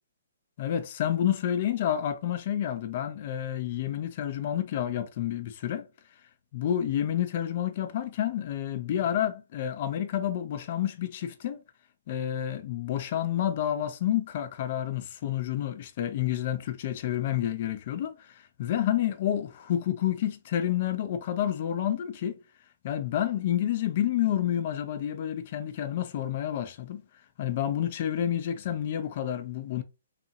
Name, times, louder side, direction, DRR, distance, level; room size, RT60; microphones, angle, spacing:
voice 1, 0.6-5.9 6.5-11.6 12.1-22.4 22.8-27.0 27.4-29.8, left 11 dB, 45° left, 0.4 m, -29 dB
2.8 x 2.4 x 2.6 m
hypercardioid pair, 150°, 0 cm